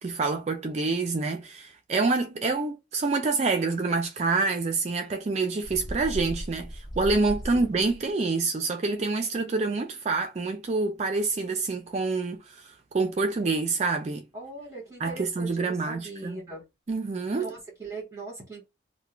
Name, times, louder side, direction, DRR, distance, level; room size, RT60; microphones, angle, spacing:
voice 1, 0.0-14.2 15.0-16.4 16.9-17.5, right 3 dB, 35° right, 0.3 m, -27 dB
Bird, 5.6-8.1, equal, 20° left, 0.5 m, -37 dB
voice 2, 14.3-16.6 17.3-18.6, right 3 dB, 20° right, 1.1 m, -40 dB
2.3 x 2.1 x 3.0 m
head